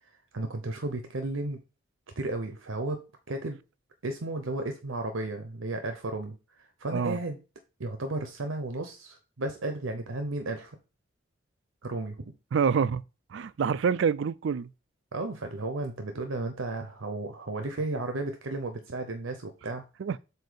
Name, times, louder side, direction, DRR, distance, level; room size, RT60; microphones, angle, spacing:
voice 1, 0.3-1.6 2.2-3.6 4.0-7.4 7.8-10.8 11.8-12.3 15.1-19.9, right 2 dB, 85° right, 0.8 m, -34 dB
voice 2, 12.5-13.0 13.3-14.7 20.0-20.2, right 6 dB, 65° right, 0.3 m, -26 dB
7.7 x 2.7 x 5.0 m
head